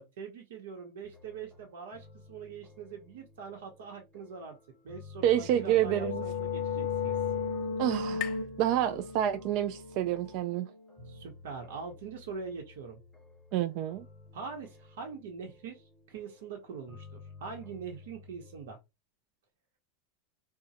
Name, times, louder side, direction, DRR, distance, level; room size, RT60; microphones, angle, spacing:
voice 1, 0.0-4.6 4.8-7.2 8.8-8.9 11.1-13.0 14.3-15.8 16.1-18.8, right 5 dB, 80° right, 0.9 m, -43 dB
sound 1, 1.0-18.7, left 4 dB, 5° right, 0.9 m, -54 dB
voice 2, 5.2-6.2 7.8-10.7 13.5-14.0, right 11 dB, 50° right, 0.3 m, -28 dB
sound 2, 5.4-11.0, left 5 dB, 85° left, 0.7 m, -35 dB
sound 3, 5.9-9.6, left 12 dB, 40° left, 0.4 m, -46 dB
3.6 x 2.1 x 2.8 m
supercardioid pair, 145°, 0 cm